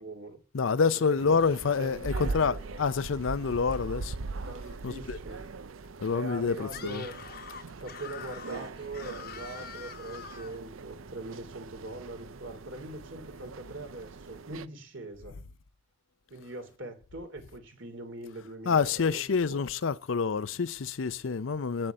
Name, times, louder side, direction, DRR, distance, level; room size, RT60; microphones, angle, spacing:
voice 1, 0.0-0.4 0.9-1.4 1.8-2.8 4.5-5.4 6.1-7.1 7.8-15.4 16.3-19.3 21.0-21.4, right 2 dB, 70° right, 3.2 m, -42 dB
voice 2, 0.5-4.2 4.8-5.2 6.0-7.0 18.7-21.9, left 5 dB, 75° left, 0.5 m, -27 dB
sound 1, 1.2-14.7, right 3 dB, 90° right, 0.6 m, -41 dB
Screaming, 6.6-10.6, left 7 dB, 50° left, 1.1 m, -45 dB
8.9 x 7.6 x 7.8 m
head